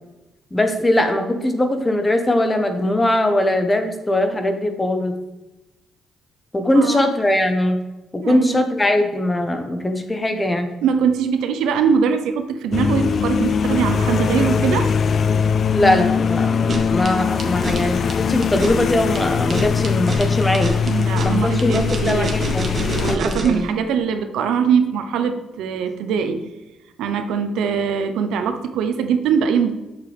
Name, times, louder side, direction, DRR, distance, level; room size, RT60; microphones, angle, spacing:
voice 1, 0.5-5.1 6.5-7.8 8.1-10.7 15.7-20.8 21.2-22.8 23.1-23.7, left 1 dB, 20° left, 6 dB, 1.0 m, -20 dB
voice 2, 6.7-7.1 8.2-8.6 10.8-14.9 20.8-22.4 22.8-26.5 27.0-29.7, right 7 dB, 85° right, 7 dB, 0.7 m, -22 dB
sound 1, 12.7-23.2, left 6 dB, 55° left, 0.3 m, -21 dB
sound 2, 16.5-23.6, right 2 dB, 45° right, 1.4 m, -28 dB
7.8 x 6.7 x 3.5 m, 1.0 s
cardioid pair, 90°, 0 cm